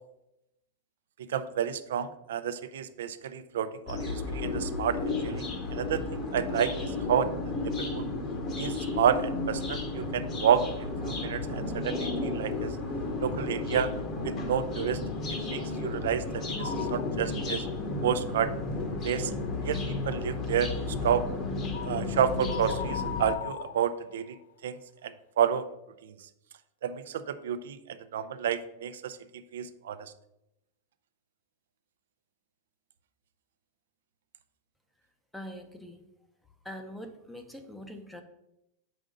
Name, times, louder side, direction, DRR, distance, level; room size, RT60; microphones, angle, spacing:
voice 1, 1.3-7.3 7.6-8.1 8.6-10.6 11.0-12.7 13.2-13.9 14.2-15.0 15.5-17.6 18.0-18.5 19.0-19.3 19.6-21.3 21.8-24.3 24.6-25.7 26.0-26.1 26.8-27.8 28.1-29.2 29.5-30.1, right 8 dB, 85° right, 11 dB, 0.5 m, -30 dB
sound 1, 3.9-23.3, left 3 dB, 30° left, 1.0 m, -33 dB
sound 2, 16.6-17.2 17.7-17.8 21.7-22.0 22.5-24.4, left 9 dB, 80° left, 0.3 m, -38 dB
voice 2, 35.3-36.0 36.6-38.2, equal, 5° left, 6 dB, 0.6 m, -43 dB
6.6 x 5.0 x 3.8 m, 0.85 s
supercardioid pair, 150°, 0 cm